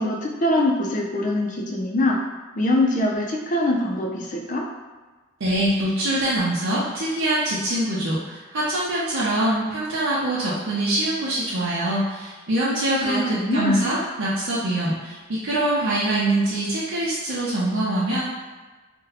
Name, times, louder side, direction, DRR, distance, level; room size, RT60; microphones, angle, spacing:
voice 1, 0.0-2.2 2.5-4.6 13.0-13.9, left 1 dB, 40° left, -1 dB, 0.5 m, -23 dB
voice 2, 5.4-18.2, right 1 dB, 85° right, -8 dB, 0.6 m, -24 dB
2.7 x 2.2 x 3.9 m, 1.3 s
head